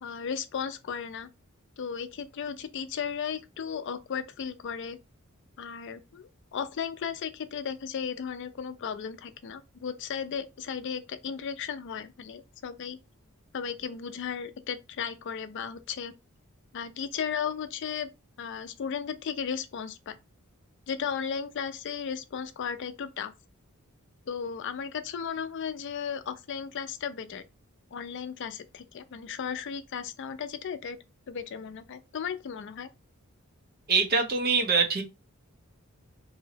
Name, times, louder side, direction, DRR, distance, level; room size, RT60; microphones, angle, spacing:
voice 1, 0.0-1.3 1.8-5.0 5.6-13.0 13.5-16.2 16.7-18.1 18.4-20.2 20.9-23.3 24.3-27.4 27.9-31.0 31.3-32.9, left 7 dB, 55° left, 0.4 m, -35 dB
voice 2, 33.9-35.0, right 4 dB, 45° right, 0.7 m, -24 dB
3.0 x 2.7 x 2.8 m
head